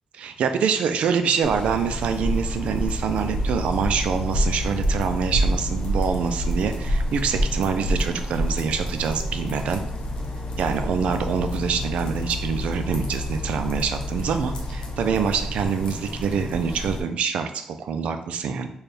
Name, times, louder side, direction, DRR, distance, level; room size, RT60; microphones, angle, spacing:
voice 1, 0.2-9.8 10.6-18.7, right 6 dB, 90° right, 8 dB, 0.4 m, -25 dB
sound 1, 1.4-17.0, equal, 50° left, 0.7 m, -28 dB
4.2 x 2.3 x 3.3 m, 0.68 s
wide cardioid pair, 140°, 2 cm